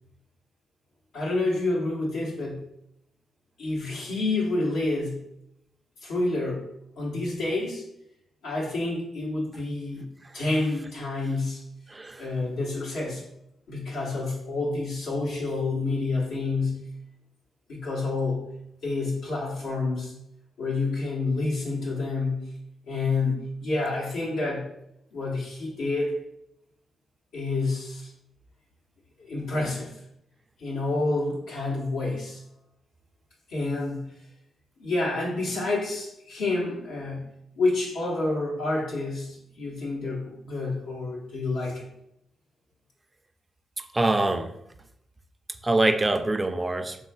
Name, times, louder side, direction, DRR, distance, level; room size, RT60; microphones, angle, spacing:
voice 1, 1.1-2.6 3.6-5.2 6.0-6.7 7.0-7.8 8.4-10.1 10.3-11.7 12.2-13.2 13.7-16.9 17.7-18.5 18.8-20.1 20.6-22.4 22.9-24.7 25.1-26.1 27.3-28.1 29.2-29.9 30.6-32.4 33.5-34.1 34.8-37.3 37.5-41.8, left 2 dB, 80° left, 1.2 m, -28 dB
voice 2, 11.9-12.3 43.8-44.6 45.6-47.0, right 2 dB, 25° right, 0.4 m, -24 dB
4.1 x 3.7 x 2.3 m
supercardioid pair, 45°, 0 cm